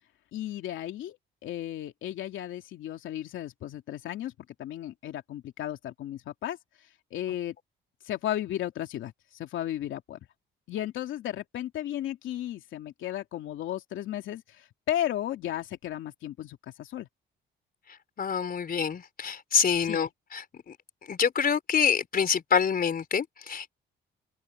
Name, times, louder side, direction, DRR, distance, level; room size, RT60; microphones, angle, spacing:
voice 1, 0.3-1.2 1.4-4.3 4.6-6.6 7.1-7.5 8.0-10.2 10.7-17.1 19.8-20.1, left 12 dB, 80° left, 3.0 m, -34 dB
voice 2, 18.2-20.8 21.1-23.7, left 7 dB, 50° left, 4.3 m, -26 dB
cardioid pair, 90°, 20 cm